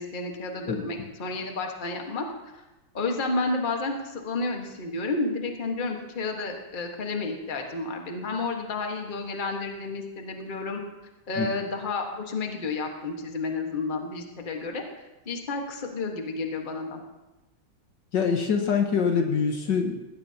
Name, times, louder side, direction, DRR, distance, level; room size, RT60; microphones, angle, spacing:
voice 1, 0.0-2.3 2.9-10.8 11.3-14.8 15.2-17.0, left 3 dB, 25° left, 2 dB, 1.3 m, -31 dB
voice 2, 18.1-20.0, left 6 dB, 60° left, 4 dB, 1.6 m, -24 dB
19.5 x 17.0 x 2.9 m, 1.0 s
omnidirectional pair, 2.3 m